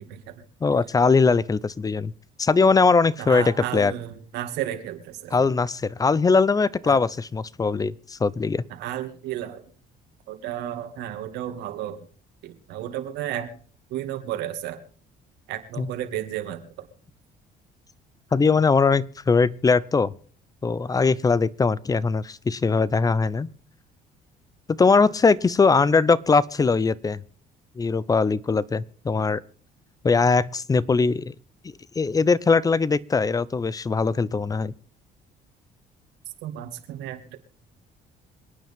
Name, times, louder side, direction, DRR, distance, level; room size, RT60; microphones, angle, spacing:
voice 1, 0.0-0.4 3.2-5.5 6.8-7.0 8.7-9.6 10.3-12.1 12.4-13.6 13.9-14.8 15.5-16.9 36.4-37.4, right 11 dB, 85° right, 6 dB, 2.3 m, -33 dB
voice 2, 0.6-2.1 2.4-3.4 3.7-3.9 5.3-8.6 15.8-15.9 18.3-20.1 20.6-23.5 24.7-27.2 27.8-29.4 30.0-31.3 32.0-34.7, left 4 dB, 20° left, 20 dB, 0.6 m, -21 dB
27.0 x 9.3 x 3.6 m, 0.44 s
cardioid pair, 110°, 17 cm